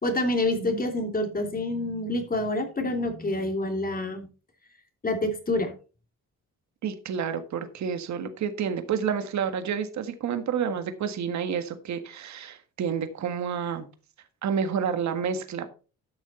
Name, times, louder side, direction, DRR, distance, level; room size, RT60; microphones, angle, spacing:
voice 1, 0.0-4.3 5.0-5.7, left 2 dB, 30° left, 5 dB, 2.9 m, -27 dB
voice 2, 6.8-13.9 14.4-15.7, right 7 dB, 65° right, 9 dB, 1.7 m, -29 dB
13.0 x 6.4 x 4.2 m, 0.35 s
cardioid pair, 90°, 30 cm